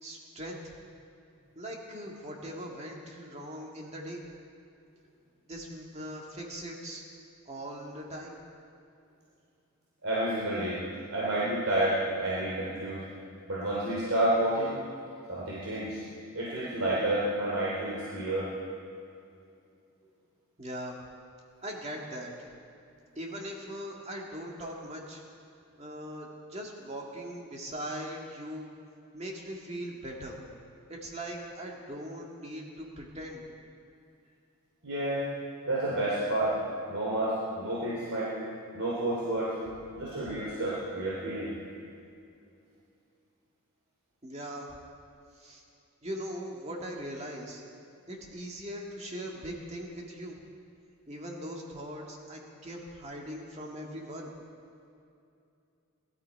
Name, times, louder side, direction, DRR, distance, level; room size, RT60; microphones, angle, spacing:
voice 1, 0.0-0.6 1.6-4.2 5.5-7.0 7.5-8.4 20.6-21.0 21.6-22.3 23.2-25.2 25.8-28.7 29.1-30.4 30.9-33.4 44.2-44.7 45.4-45.6 46.0-47.6 48.1-50.4 51.1-54.3, equal, 30° right, -1 dB, 1.9 m, -40 dB
voice 2, 10.0-10.8 11.1-13.0 13.5-14.8 15.3-16.0 16.3-18.5 34.8-35.3 35.7-36.5 36.9-38.3 38.7-39.5 40.0-41.5, right 1 dB, 75° right, -6 dB, 2.9 m, -30 dB
20.5 x 12.5 x 4.7 m, 2.5 s
head